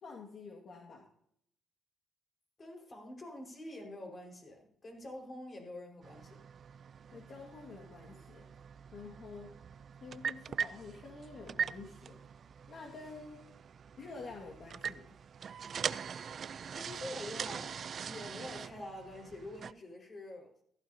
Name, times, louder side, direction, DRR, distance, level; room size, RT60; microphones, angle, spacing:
voice 1, 0.0-1.0 7.1-8.5 8.9-9.6 10.0-12.2 12.7-13.4 14.0-15.1, left 4 dB, 55° left, -1 dB, 2.1 m, -48 dB
voice 2, 2.6-6.4 16.7-20.5, left 1 dB, 35° left, 1 dB, 5.2 m, -46 dB
sound 1, 6.0-19.7, right 7 dB, 50° right, 0.5 m, -42 dB
15.5 x 15.0 x 2.9 m, 0.69 s
cardioid pair, 90°, 0 cm